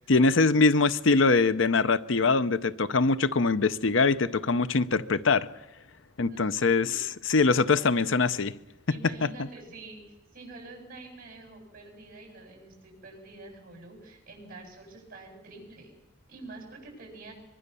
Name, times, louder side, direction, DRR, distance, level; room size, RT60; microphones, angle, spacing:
voice 1, 0.1-5.5 6.2-7.0 7.3-8.5, left 3 dB, 65° left, 0.7 m, -23 dB
voice 2, 6.3-7.0 7.3-8.0 8.9-10.0 10.3-15.9 16.3-17.3, right 2 dB, 45° right, 7.8 m, -47 dB
23.5 x 23.0 x 6.9 m
head